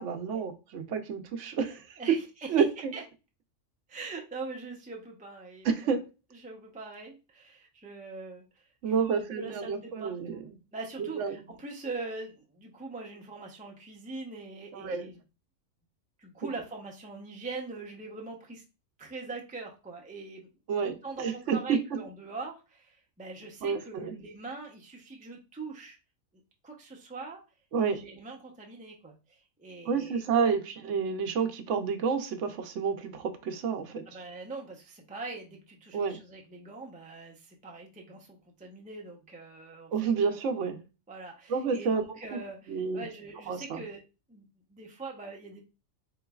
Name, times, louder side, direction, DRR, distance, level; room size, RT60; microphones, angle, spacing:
voice 1, 0.0-2.2 2.5-2.9 5.6-6.0 8.8-10.4 11.0-11.4 14.7-15.1 20.7-21.8 23.6-24.2 27.7-28.0 29.9-34.0 35.9-36.2 39.9-40.8 41.5-42.2 42.7-43.0 43.5-43.8, right 6 dB, 70° right, 1.0 m, -29 dB
voice 2, 2.0-2.5 2.9-3.0 3.9-6.0 6.3-10.4 10.7-15.2 16.2-18.6 19.0-20.5 20.8-26.0 26.6-27.4 27.8-30.5 34.1-39.9 40.2-40.4 41.1-44.0 44.3-44.4 44.7-45.6, right 3 dB, 10° right, 0.4 m, -42 dB
3.8 x 3.7 x 2.3 m
omnidirectional pair, 1.4 m